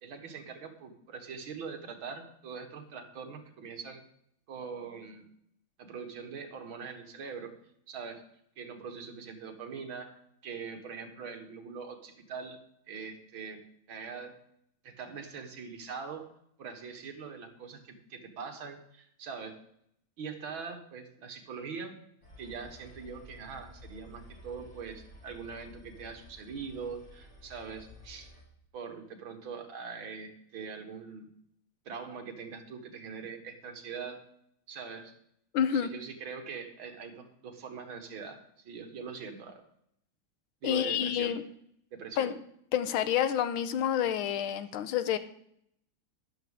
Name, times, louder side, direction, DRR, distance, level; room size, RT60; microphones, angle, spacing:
voice 1, 0.0-4.0 4.5-5.3 5.8-7.5 7.9-8.2 8.6-12.6 12.9-13.6 13.9-14.4 14.8-16.3 16.6-19.6 20.2-21.9 22.4-28.3 28.7-31.3 31.9-34.2 34.7-35.1 35.7-39.6 40.6-41.3 41.9-42.3, right 5 dB, 75° right, 5 dB, 2.2 m, -42 dB
sound 1, 22.2-28.4, equal, 25° left, 3.1 m, -53 dB
voice 2, 35.5-35.9 40.6-41.4 42.2-42.4 42.7-45.2, left 9 dB, 90° left, 12 dB, 1.6 m, -28 dB
13.0 x 11.0 x 3.6 m, 0.72 s
omnidirectional pair, 2.2 m